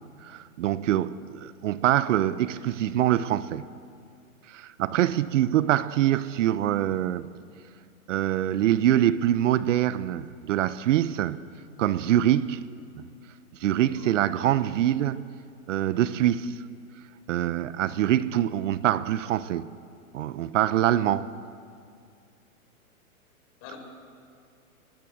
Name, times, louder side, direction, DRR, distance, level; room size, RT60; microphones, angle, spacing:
voice 1, 0.2-3.6 4.5-7.3 8.1-11.4 11.8-12.6 13.6-15.2 15.7-16.6 17.3-19.7 20.1-21.3, right 12 dB, 60° right, 0.9 m, -24 dB
voice 2, 4.9-5.2 13.7-14.2 23.6-23.8, left 8 dB, 40° left, 7.0 m, -46 dB
26.0 x 21.5 x 8.0 m
hypercardioid pair, 125°, 43 cm